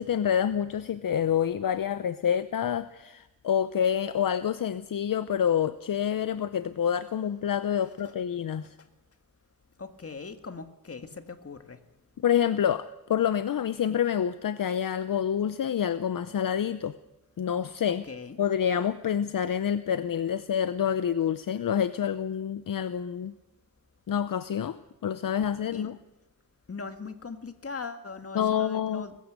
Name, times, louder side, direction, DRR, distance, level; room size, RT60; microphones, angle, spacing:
voice 1, 0.0-8.7 12.2-16.9 17.4-18.0 18.4-23.3 24.1-26.0 28.3-29.1, left 9 dB, 65° left, 13 dB, 0.7 m, -27 dB
voice 2, 9.8-11.8 18.1-18.4 25.7-25.9 26.7-29.2, left 4 dB, 40° left, 8 dB, 1.9 m, -40 dB
21.0 x 15.0 x 8.1 m, 0.98 s
cardioid pair, 70°, 36 cm